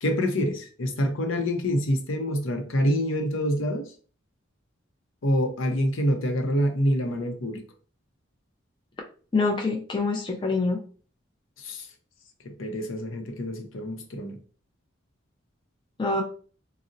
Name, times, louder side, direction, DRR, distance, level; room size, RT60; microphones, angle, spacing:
voice 1, 0.0-3.9 5.2-7.6 11.6-11.9 12.4-14.4, equal, 85° left, 0.6 m, -26 dB
voice 2, 9.3-10.8 16.0-16.2, left 3 dB, 25° left, 0.4 m, -25 dB
3.8 x 2.0 x 2.6 m
head